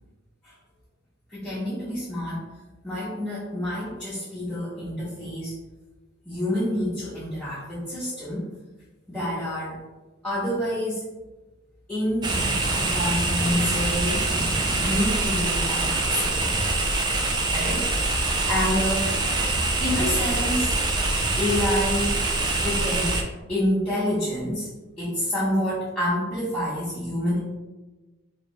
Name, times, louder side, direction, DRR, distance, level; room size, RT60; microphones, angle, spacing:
voice 1, 1.3-2.4 2.8-5.5 6.2-8.5 9.1-9.8 10.2-11.0 11.9-12.3 12.9-14.3 14.8-16.6 17.5-19.1 19.8-20.7 21.4-22.2 22.6-23.2 23.5-24.7 25.0-27.4, left 1 dB, 5° left, -11 dB, 0.8 m, -27 dB
sound 1, 12.2-23.2, right 2 dB, 20° right, 0.3 m, -24 dB
3.2 x 2.7 x 3.1 m, 1.2 s
head